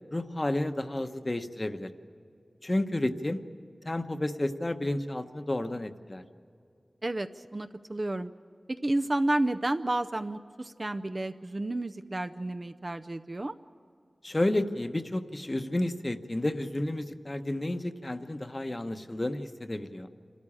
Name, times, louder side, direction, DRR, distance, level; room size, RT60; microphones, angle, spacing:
voice 1, 0.1-1.9 2.6-3.4 3.8-6.2 14.2-20.1, left 1 dB, 30° left, 8 dB, 1.0 m, -31 dB
voice 2, 7.0-8.3 8.7-13.6, right 1 dB, 40° right, 8 dB, 0.5 m, -31 dB
27.0 x 13.5 x 8.6 m, 2.4 s
wide cardioid pair, 75°, 0 cm